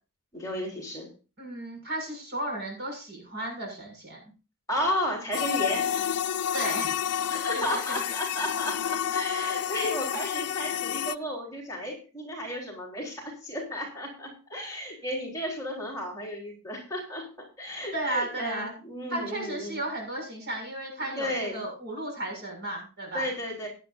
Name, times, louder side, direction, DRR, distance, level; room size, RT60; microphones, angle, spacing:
voice 1, 0.3-1.1 4.7-5.9 7.3-17.3 17.6-19.8 21.2-21.7 23.1-23.7, equal, 15° left, -3 dB, 4.1 m, -33 dB
voice 2, 1.4-4.2 6.5-6.9 7.5-8.0 9.4-9.6 17.9-18.7 19.1-23.3, right 1 dB, 50° right, 1 dB, 6.7 m, -34 dB
sound 1, 5.3-11.1, left 9 dB, 85° left, 0.5 m, -29 dB
17.0 x 10.5 x 2.7 m, 0.34 s
head